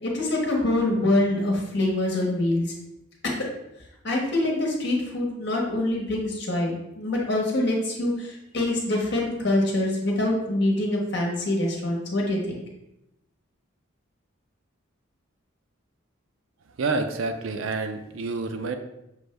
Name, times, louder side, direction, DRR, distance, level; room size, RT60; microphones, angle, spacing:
voice 1, 0.0-2.7 3.2-3.4 4.0-12.6, left 1 dB, 55° left, -1 dB, 1.2 m, -25 dB
voice 2, 16.8-18.8, right 3 dB, 70° right, 7 dB, 0.5 m, -28 dB
6.3 x 2.6 x 3.2 m, 0.86 s
head